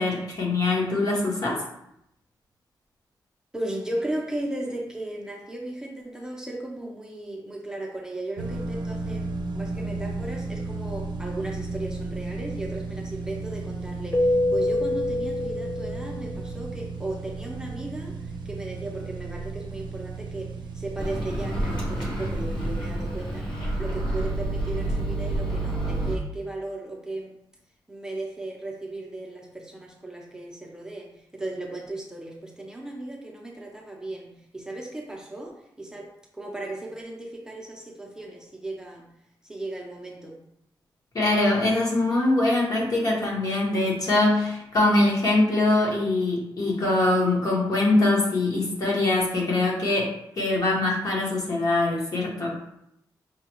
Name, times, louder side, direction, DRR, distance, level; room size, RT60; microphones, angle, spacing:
voice 1, 0.0-1.6 41.1-52.5, left 2 dB, 50° left, -3 dB, 1.2 m, -23 dB
voice 2, 3.5-9.3 9.5-23.5 23.8-27.4 27.9-39.0 39.4-40.4, right 2 dB, 10° right, -2 dB, 0.6 m, -36 dB
sound 1, 8.4-22.9, right 3 dB, 75° right, 0.5 m, -34 dB
Keyboard (musical), 14.1-16.6, left 1 dB, 35° left, 0.5 m, -26 dB
Microwave oven, 21.0-26.2, right 1 dB, 75° left, 1.0 m, -28 dB
5.5 x 2.2 x 3.0 m, 0.78 s
wide cardioid pair, 115°, 8 cm